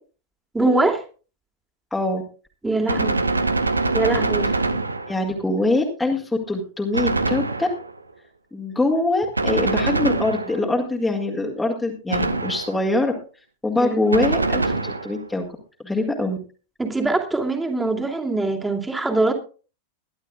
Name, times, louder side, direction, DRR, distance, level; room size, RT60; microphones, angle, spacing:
voice 1, 0.5-1.0 2.6-3.3 3.9-4.5 13.8-14.3 16.8-19.3, right 2 dB, 10° right, 1 dB, 2.6 m, -23 dB
voice 2, 1.9-2.2 5.1-7.7 8.5-13.1 13.6-15.4 15.8-16.4, left 2 dB, 5° left, 0 dB, 2.1 m, -23 dB
Gunshot gunfire, 2.9-5.4 6.9-8.0 9.3-10.8 12.1-12.9 14.1-15.3, right 3 dB, 80° right, 0.9 m, -24 dB
22.5 x 11.5 x 2.4 m, 0.36 s
figure-of-eight pair, 90°, 0 cm